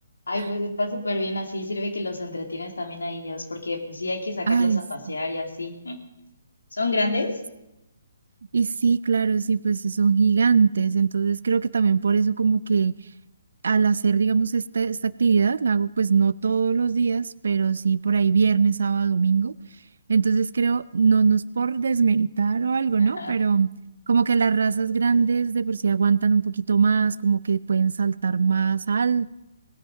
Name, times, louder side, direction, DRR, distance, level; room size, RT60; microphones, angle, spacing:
voice 1, 0.3-6.0 6.7-7.4 23.0-23.3, left 2 dB, 75° left, 4 dB, 2.4 m, -29 dB
voice 2, 4.5-4.8 8.5-12.9 13.6-19.5 20.1-23.7 24.1-29.3, right 5 dB, 65° right, 20 dB, 0.5 m, -21 dB
19.0 x 8.9 x 5.2 m, 0.92 s
figure-of-eight pair, 135°, 0 cm